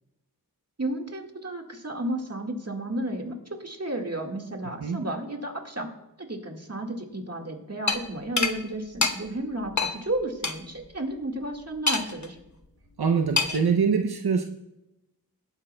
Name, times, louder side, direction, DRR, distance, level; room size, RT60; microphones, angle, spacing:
voice 1, 0.8-3.3 3.6-5.9 6.2-12.4, right 1 dB, 40° right, 1.7 m, -32 dB
sound 1, 7.9-8.0 8.4-8.5 9.0-9.1 9.8-9.9 10.4-10.5 11.9-12.3 13.4-13.7, left 4 dB, 50° left, 0.9 m, -24 dB
voice 2, 13.0-14.4, right 5 dB, 80° right, 0.7 m, -24 dB
18.5 x 10.0 x 2.2 m
wide cardioid pair, 40°, 37 cm